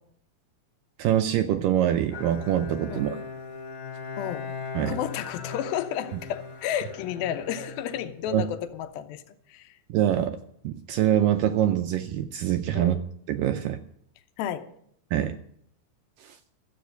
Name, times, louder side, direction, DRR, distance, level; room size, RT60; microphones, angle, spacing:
voice 1, 1.0-3.2 4.8-5.0 8.3-8.5 9.9-10.4 10.6-13.0 13.3-13.8 15.1-15.4 16.2-16.4, right 11 dB, 85° right, 8 dB, 2.0 m, -24 dB
Bowed string instrument, 2.1-8.8, left 5 dB, 40° left, 2.6 m, -39 dB
voice 2, 2.9-3.2 4.2-4.5 4.9-9.8 12.7-13.0 14.4-14.7, left 10 dB, 75° left, 10 dB, 2.6 m, -32 dB
13.5 x 8.0 x 7.9 m, 0.69 s
omnidirectional pair, 4.5 m